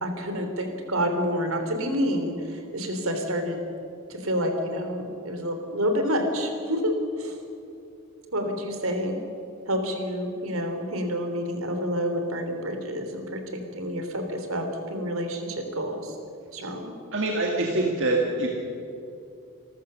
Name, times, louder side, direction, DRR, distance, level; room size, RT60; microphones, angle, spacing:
voice 1, 0.0-3.6 4.1-7.4 8.3-9.2 9.7-16.2 16.5-16.9, equal, 75° right, 5 dB, 3.2 m, -28 dB
voice 2, 17.1-18.5, right 2 dB, 60° right, 0 dB, 2.1 m, -24 dB
27.5 x 14.0 x 6.8 m, 2.6 s
head